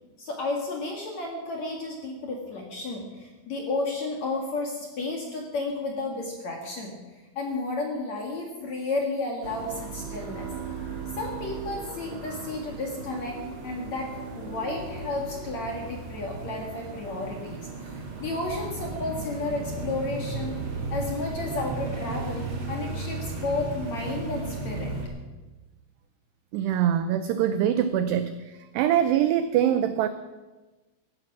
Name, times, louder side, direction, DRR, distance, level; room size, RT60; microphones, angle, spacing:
voice 1, 0.2-10.5 11.1-20.6 20.9-24.9, left 2 dB, 50° left, 0 dB, 2.2 m, -32 dB
sound 1, 9.4-25.1, right 3 dB, 40° right, 1.9 m, -35 dB
voice 2, 26.5-30.1, right 10 dB, 85° right, 11 dB, 2.3 m, -24 dB
16.0 x 14.5 x 6.1 m, 1.2 s
omnidirectional pair, 5.6 m